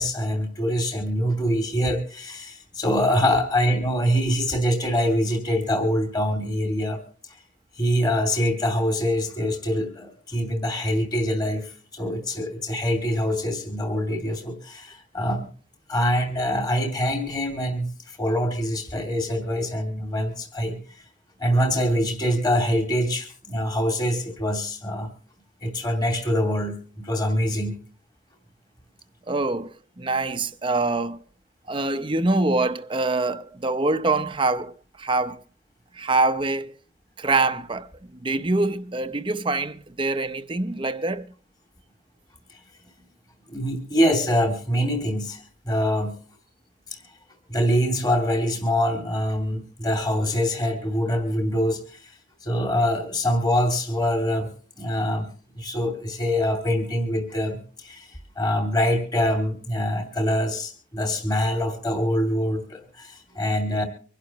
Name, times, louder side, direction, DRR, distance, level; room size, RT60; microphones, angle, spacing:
voice 1, 0.0-7.0 7.3-7.4 7.8-15.5 15.9-21.0 21.4-25.1 25.6-27.8 43.5-46.1 47.5-52.1 52.4-54.5 54.8-63.8, equal, 20° left, 2.6 m, -24 dB
voice 2, 29.3-31.2 31.7-35.4 35.9-36.7 37.2-41.3, right 2 dB, 25° right, 0.7 m, -25 dB
25.0 x 11.5 x 3.1 m
head